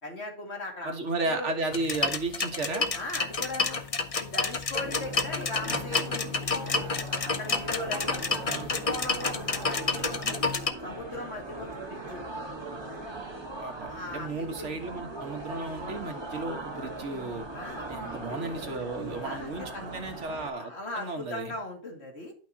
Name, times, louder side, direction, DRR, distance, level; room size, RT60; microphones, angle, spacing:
voice 1, 0.0-1.6 2.9-3.8 4.2-6.9 7.2-10.4 10.8-12.3 12.9-13.0 13.9-14.7 17.5-18.9 19.2-19.8 20.6-22.3, left 2 dB, 65° left, 1 dB, 2.6 m, -39 dB
voice 2, 0.8-2.9 5.7-6.0 8.4-8.7 13.6-17.5 17.9-21.5, right 2 dB, 85° right, 5 dB, 1.8 m, -34 dB
sound 1, 1.7-10.7, left 4 dB, 35° left, 0.8 m, -29 dB
sound 2, 4.8-20.5, right 2 dB, 25° right, 1.5 m, -40 dB
11.5 x 5.7 x 2.9 m, 0.43 s
omnidirectional pair, 1.2 m